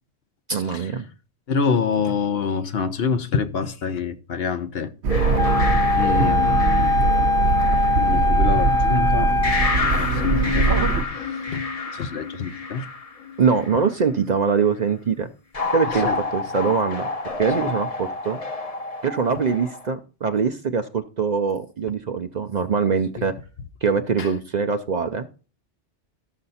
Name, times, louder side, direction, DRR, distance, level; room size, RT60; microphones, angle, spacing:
voice 1, 0.5-1.1 13.4-15.3 15.7-17.1 17.4-18.4 19.0-23.3 23.8-25.3, right 5 dB, 50° right, 0.6 m, -23 dB
voice 2, 1.5-4.9 5.9-7.2 8.0-9.3 9.7-10.8 11.0-11.6 11.9-12.9 15.9-16.2 17.6-17.7 23.2-23.3 24.2-24.3, left 6 dB, 60° left, 1.0 m, -26 dB
sound 1, 5.0-11.0, right 4 dB, 75° right, 1.1 m, -22 dB
sound 2, 5.1-8.7 9.4-13.9 15.5-19.9, left 3 dB, 35° left, 0.9 m, -29 dB
Wind instrument woodwind instrument, 5.4-9.8, left 3 dB, 5° left, 0.4 m, -21 dB
12.5 x 6.7 x 4.1 m
omnidirectional pair, 1.2 m